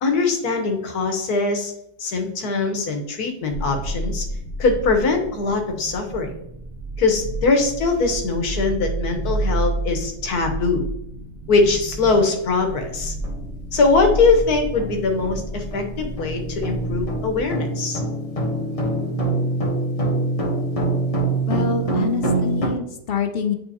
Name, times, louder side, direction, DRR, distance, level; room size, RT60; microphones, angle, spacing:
voice 1, 0.0-1.7 2.0-4.2 4.6-6.3 7.0-10.9 11.5-13.1 13.7-18.0, left 3 dB, 85° left, 4 dB, 1.6 m, -21 dB
sound 1, 3.5-17.5, right 1 dB, 55° right, 1.2 m, -30 dB
sound 2, 12.0-12.1 12.6-12.8 13.2-22.7, right 2 dB, 25° left, 0.9 m, -25 dB
voice 2, 21.5-23.5, left 6 dB, 60° left, 6 dB, 0.6 m, -25 dB
9.1 x 3.8 x 2.8 m, 0.79 s
omnidirectional pair, 1.6 m